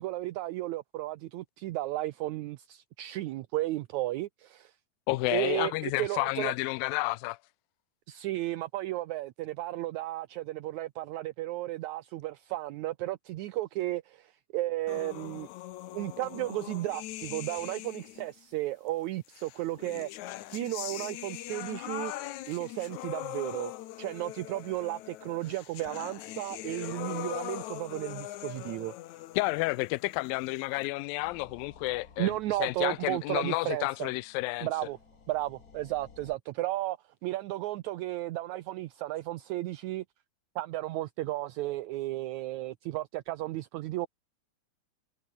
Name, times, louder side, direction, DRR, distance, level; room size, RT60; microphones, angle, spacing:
voice 1, 0.0-4.7 5.3-6.5 8.1-15.5 15.9-20.1 20.5-22.1 22.5-23.7 24.0-28.9 32.2-34.1 34.6-35.0 35.3-37.0 37.2-40.0 40.6-44.1, right 16 dB, 75° right, 1.8 m, -34 dB
voice 2, 5.1-7.4 29.4-32.3 32.6-34.7, left 21 dB, 90° left, 2.4 m, -30 dB
sound 1, 14.9-18.3 19.3-30.9, left 15 dB, 70° left, 2.0 m, -41 dB
sound 2, 31.2-36.4, left 5 dB, 30° left, 2.1 m, -56 dB
omnidirectional pair, 4.0 m